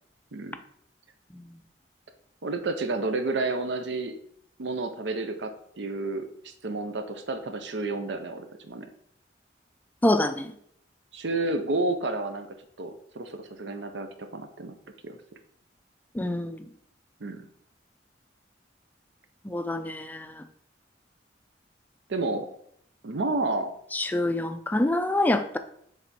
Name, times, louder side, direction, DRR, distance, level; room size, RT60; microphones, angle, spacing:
voice 1, 2.4-4.1 4.6-8.9 11.1-12.5 12.8-14.8 15.0-15.2 17.2-17.5 22.1-22.5 23.0-23.7, right 2 dB, 70° right, 7 dB, 0.6 m, -30 dB
voice 2, 10.0-10.5 16.2-16.6 19.5-20.4 23.9-25.6, left 1 dB, 10° left, 8 dB, 0.3 m, -26 dB
7.2 x 3.4 x 4.1 m, 0.69 s
head